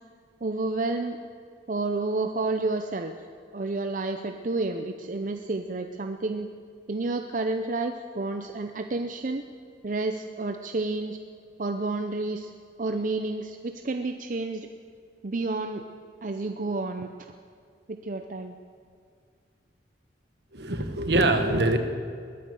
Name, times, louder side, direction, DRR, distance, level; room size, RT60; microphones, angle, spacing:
voice 1, 0.4-1.2 1.7-3.1 3.5-6.5 6.9-9.4 9.8-11.2 11.6-12.5 12.8-14.7 15.2-15.8 16.2-17.3 17.9-18.5, right 3 dB, 45° right, 6 dB, 0.6 m, -30 dB
voice 2, 20.5-21.8, right 2 dB, 70° right, 7 dB, 1.4 m, -23 dB
20.5 x 10.5 x 6.9 m, 2.1 s
head